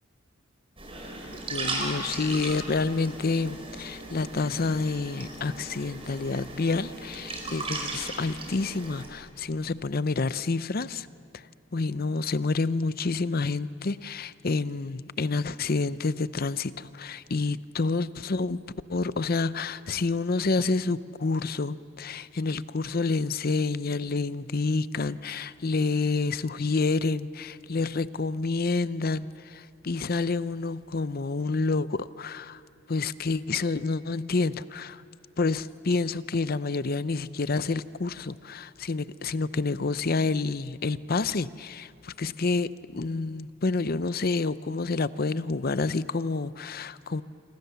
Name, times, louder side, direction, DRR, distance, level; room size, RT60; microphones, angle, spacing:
sound 1, 0.8-9.1, right 2 dB, 30° right, 4.8 m, -37 dB
voice 1, 1.5-11.1 11.3-11.4 11.7-18.6 18.9-32.6 32.9-35.0 35.4-47.2, left 3 dB, 50° left, 16 dB, 0.6 m, -28 dB
27.0 x 24.5 x 7.0 m, 2.8 s
head